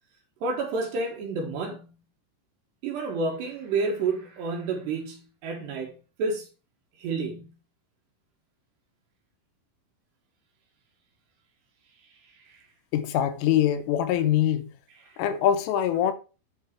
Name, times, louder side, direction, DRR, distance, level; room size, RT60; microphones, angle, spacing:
voice 1, 0.4-1.9 2.8-6.5 7.0-7.6 12.5-12.6 15.0-15.2, right 3 dB, 65° right, 3.3 m, -30 dB
voice 2, 12.9-14.7 15.2-16.1, left 10 dB, 80° left, 3.3 m, -23 dB
9.0 x 6.5 x 4.8 m
omnidirectional pair, 5.9 m